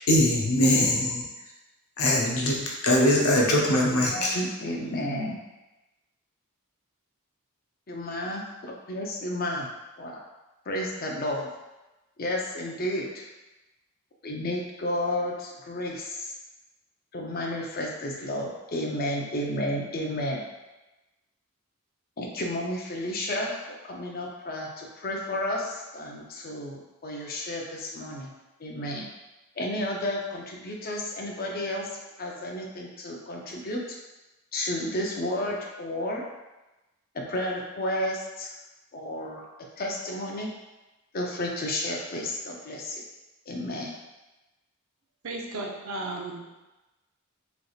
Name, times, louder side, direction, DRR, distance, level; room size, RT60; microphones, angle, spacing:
voice 1, 0.1-1.2 2.0-4.3, left 1 dB, 90° left, -3 dB, 0.9 m, -22 dB
voice 2, 3.7-5.4 7.9-9.7 10.0-10.2 10.7-11.5 12.2-13.3 14.2-16.3 17.1-20.4 22.2-23.6 23.8-28.3 28.6-29.1 29.6-31.9 32.2-34.0 34.5-36.2 37.1-38.5 38.9-39.5 39.8-40.5 41.1-43.0 43.5-43.9, left 1 dB, 45° left, -1 dB, 0.6 m, -32 dB
voice 3, 45.2-46.5, right 2 dB, 70° right, 0 dB, 0.6 m, -34 dB
4.0 x 3.3 x 2.4 m, 1.1 s
head